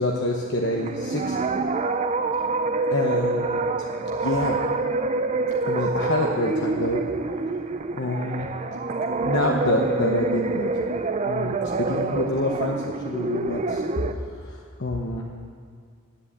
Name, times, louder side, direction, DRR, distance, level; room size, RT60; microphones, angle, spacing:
voice 1, 0.0-1.4 2.9-3.7 4.2-4.6 5.7-7.0 7.9-8.5 9.1-10.7 11.3-13.8 14.4-15.3, left 1 dB, 55° left, 0 dB, 0.9 m, -27 dB
sound 1, 0.6-14.1, right 3 dB, 30° right, 0.5 m, -26 dB
9.9 x 8.3 x 8.3 m, 2.1 s
head